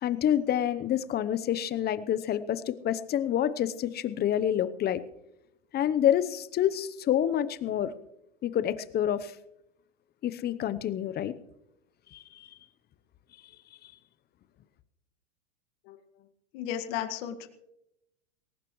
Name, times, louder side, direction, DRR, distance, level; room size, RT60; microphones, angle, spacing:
voice 1, 0.0-5.0 5.7-8.0 8.4-9.4 10.2-11.3 12.1-12.5 13.8-13.9, left 10 dB, 25° left, 14 dB, 0.9 m, -28 dB
voice 2, 16.5-17.5, left 10 dB, 55° left, 7 dB, 1.9 m, -34 dB
21.0 x 18.0 x 3.2 m, 0.84 s
hypercardioid pair, 110°, 37 cm